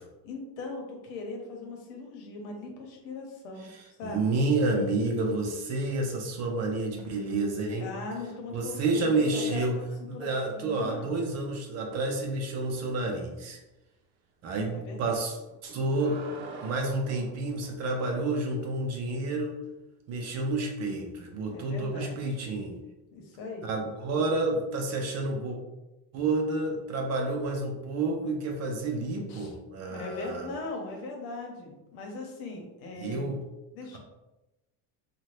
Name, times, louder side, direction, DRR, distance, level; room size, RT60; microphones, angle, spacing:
voice 1, 0.2-3.7 4.0-4.4 7.8-9.6 10.1-10.3 10.5-11.1 14.7-15.0 21.5-22.4 23.1-23.7 29.3-29.5 29.9-33.3 33.7-34.0, left 3 dB, 85° left, 1 dB, 1.0 m, -39 dB
voice 2, 3.7-7.9 8.5-9.7 10.1-13.6 14.4-15.4 15.6-16.2 16.6-19.5 20.1-22.8 23.6-25.6 26.1-30.5 33.0-33.4, right 2 dB, 35° right, 1 dB, 0.5 m, -29 dB
sound 1, 7.0-7.6 7.9-10.3 11.9-12.1 15.5-18.0 20.3-20.4, right 3 dB, 75° right, 0.7 m, -47 dB
2.8 x 2.4 x 3.2 m, 1.0 s
cardioid pair, 145°, 44 cm